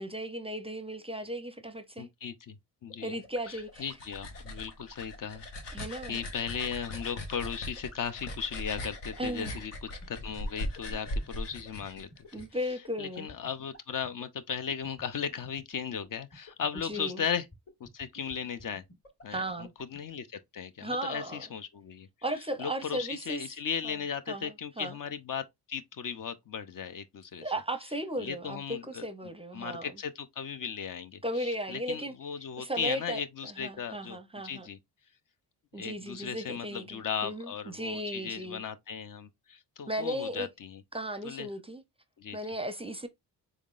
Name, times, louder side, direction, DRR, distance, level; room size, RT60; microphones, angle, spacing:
voice 1, 0.0-2.1 3.0-3.9 5.7-6.2 9.2-9.6 12.3-13.3 16.8-17.2 19.3-19.7 20.8-21.5 22.2-23.6 23.8-24.0 24.3-25.0 27.4-29.9 31.2-32.1 32.6-34.7 35.7-38.6 39.9-40.5 40.9-41.8 42.3-43.1, right 1 dB, 15° right, 0.5 m, -36 dB
voice 2, 2.0-2.6 2.8-3.2 3.5-5.4 5.7-12.1 13.0-17.4 17.8-18.8 19.2-22.1 22.6-25.4 25.7-27.5 28.2-29.0 29.5-34.2 34.4-34.8 35.8-40.8 41.2-41.5 42.2-42.4, left 7 dB, 50° left, 0.6 m, -37 dB
sound 1, 2.9-20.0, left 2 dB, 35° left, 1.7 m, -50 dB
sound 2, 3.5-12.5, left 1 dB, 85° left, 1.1 m, -39 dB
3.7 x 3.6 x 2.4 m
cardioid pair, 65°, 41 cm